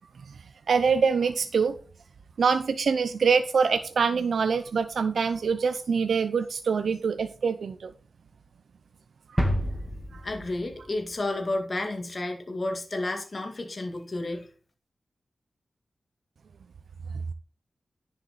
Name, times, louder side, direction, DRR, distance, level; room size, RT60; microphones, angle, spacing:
voice 1, 0.7-1.7 2.4-7.9 9.3-9.4 10.1-10.2, right 5 dB, 90° right, 10 dB, 0.6 m, -24 dB
sound 1, 9.4-11.2 11.5-11.6, equal, 5° right, 2.3 m, -30 dB
voice 2, 10.2-14.5, left 2 dB, 45° left, 4 dB, 2.0 m, -31 dB
10.0 x 7.1 x 4.1 m, 0.39 s
wide cardioid pair, 70°, 0 cm